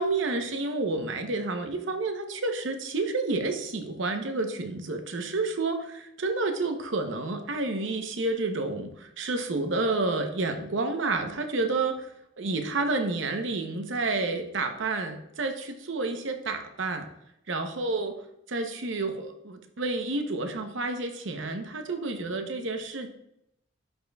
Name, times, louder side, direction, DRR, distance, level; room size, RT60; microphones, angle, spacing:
voice 1, 0.0-12.1 12.4-17.1 17.5-18.1 18.5-23.1, right 3 dB, 75° right, 6 dB, 0.8 m, -30 dB
10.0 x 4.3 x 2.3 m, 0.78 s
head